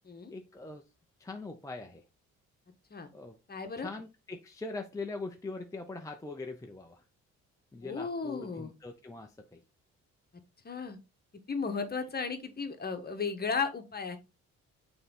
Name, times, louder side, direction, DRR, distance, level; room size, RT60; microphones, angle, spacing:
voice 1, 0.3-0.8 1.2-2.0 3.1-3.4 3.8-7.0 7.7-9.6, left 3 dB, 10° left, 0.6 m, -42 dB
voice 2, 3.5-3.9 7.8-8.7 10.6-11.0 11.5-14.2, left 5 dB, 30° left, 1.2 m, -35 dB
6.6 x 3.9 x 3.7 m
cardioid pair, 90°, 30 cm